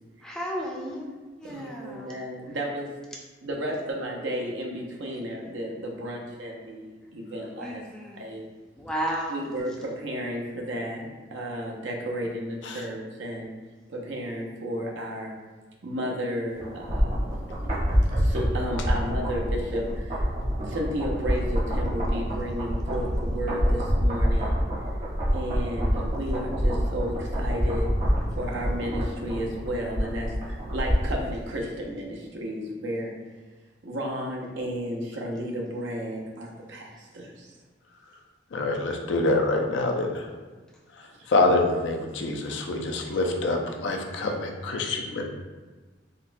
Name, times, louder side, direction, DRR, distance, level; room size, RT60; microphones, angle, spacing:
voice 1, 0.2-2.2 7.6-8.3 8.8-9.4, right 1 dB, 5° left, -3 dB, 0.4 m, -33 dB
voice 2, 1.4-2.9 3.4-7.8 8.1-8.5 9.3-13.5 13.9-15.3 15.8-17.2 18.1-20.3 20.7-24.6 25.3-27.9 28.3-33.1 33.8-37.5 41.0-41.3, equal, 75° right, -1 dB, 0.6 m, -33 dB
sound 1, 16.6-31.3 31.6-31.7, equal, 40° right, 0.8 m, -26 dB
voice 3, 38.5-40.3 41.3-45.3, left 2 dB, 70° left, 2 dB, 0.4 m, -26 dB
3.9 x 2.2 x 2.5 m, 1.3 s
head